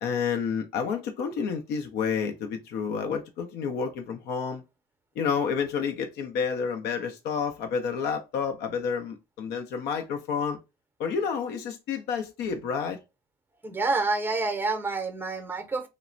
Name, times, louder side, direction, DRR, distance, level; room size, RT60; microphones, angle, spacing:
voice 1, 0.0-4.6 5.2-10.6 11.0-13.0, left 6 dB, 85° left, 0.6 m, -30 dB
voice 2, 13.6-15.9, right 3 dB, 10° right, 0.6 m, -28 dB
3.1 x 2.0 x 2.4 m
cardioid pair, 110°, 17 cm